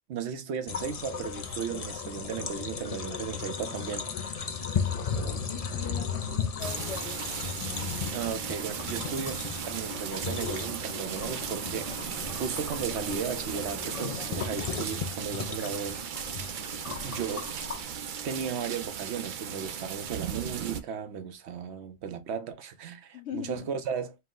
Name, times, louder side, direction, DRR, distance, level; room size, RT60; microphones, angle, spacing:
voice 1, 0.1-4.3 8.1-16.0 16.9-17.5 18.2-24.2, right 7 dB, 80° right, 0.9 m, -35 dB
sound 1, 0.7-17.8, left 6 dB, 50° left, 0.5 m, -36 dB
voice 2, 5.4-7.4 23.1-23.7, left 8 dB, 90° left, 1.0 m, -41 dB
sound 2, 6.6-20.8, right 8 dB, 60° right, 0.6 m, -36 dB
4.4 x 2.1 x 3.7 m
omnidirectional pair, 1.1 m